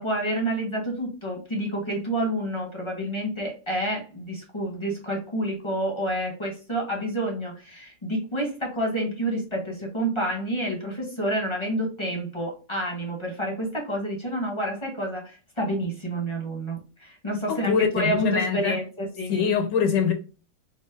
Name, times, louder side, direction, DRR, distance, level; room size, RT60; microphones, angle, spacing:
voice 1, 0.0-19.6, right 1 dB, 25° left, 0.6 m, -29 dB
voice 2, 17.5-18.8 19.3-20.1, left 7 dB, 75° left, 1.2 m, -23 dB
4.2 x 2.0 x 3.3 m
omnidirectional pair, 2.0 m